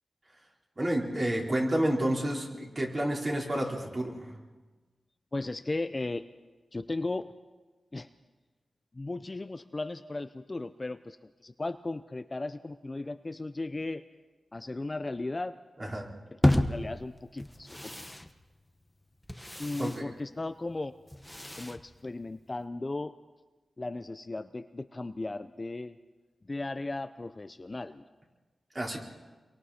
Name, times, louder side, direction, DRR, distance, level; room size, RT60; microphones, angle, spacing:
voice 1, 0.8-4.4 15.8-16.1 19.8-20.1 28.7-29.0, right 1 dB, 30° right, -2 dB, 4.4 m, -30 dB
voice 2, 5.3-6.2 6.7-7.3 7.9-8.1 8.9-14.0 14.5-15.5 16.4-18.0 19.6-20.9 21.6-23.1 23.8-26.0 26.5-28.0, left 2 dB, 30° left, 10 dB, 0.6 m, -36 dB
sound 1, 16.4-22.6, left 1 dB, 10° left, 1.1 m, -33 dB
28.0 x 23.0 x 4.3 m, 1.3 s
wide cardioid pair, 100°, 0 cm